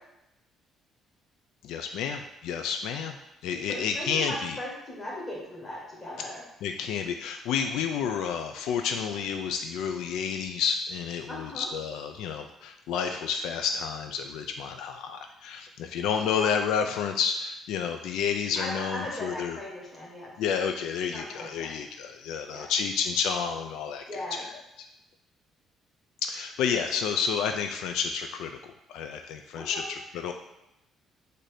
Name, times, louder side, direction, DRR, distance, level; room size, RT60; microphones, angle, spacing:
voice 1, 1.6-3.2 3.4-4.6 6.6-19.6 20.4-24.5 26.2-28.6 28.9-30.3, left 7 dB, 80° left, 6 dB, 0.3 m, -30 dB
voice 2, 3.7-6.4 11.3-11.7 16.4-16.5 18.6-20.3 21.1-21.7 22.5-22.6 24.1-24.4 29.5-29.9, left 1 dB, 20° left, -4 dB, 1.2 m, -38 dB
4.2 x 2.6 x 4.8 m, 0.88 s
cardioid pair, 180°, 0 cm